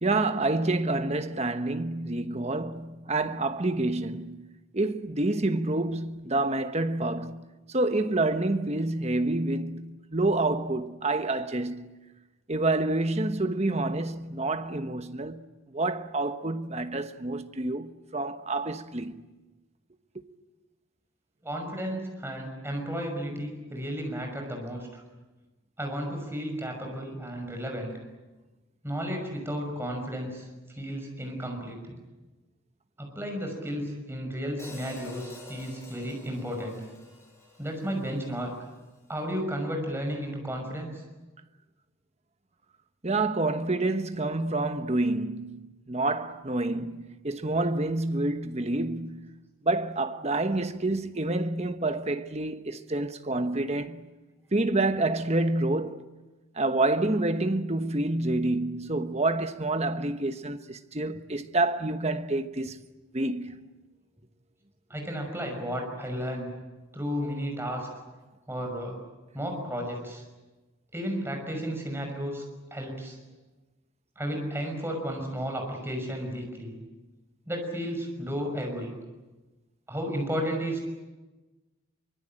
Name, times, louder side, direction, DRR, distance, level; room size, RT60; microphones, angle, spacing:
voice 1, 0.0-4.5 4.7-11.9 12.5-15.4 15.7-19.2 43.0-49.3 49.6-54.0 54.5-56.0 56.6-62.8 63.1-63.6, right 2 dB, 30° right, 1.1 m, -28 dB
voice 2, 21.4-25.0 25.8-27.9 28.8-30.5 30.7-31.9 33.0-36.8 37.6-38.5 39.1-41.0 64.9-66.5 66.9-67.9 68.5-69.0 69.3-70.2 70.9-72.4 72.7-73.2 74.2-76.7 77.5-78.9 79.9-80.9, equal, 10° right, 5.8 m, -33 dB
Hi-hat, 34.6-38.8, left 2 dB, 15° left, 5.5 m, -49 dB
24.5 x 24.0 x 8.9 m
head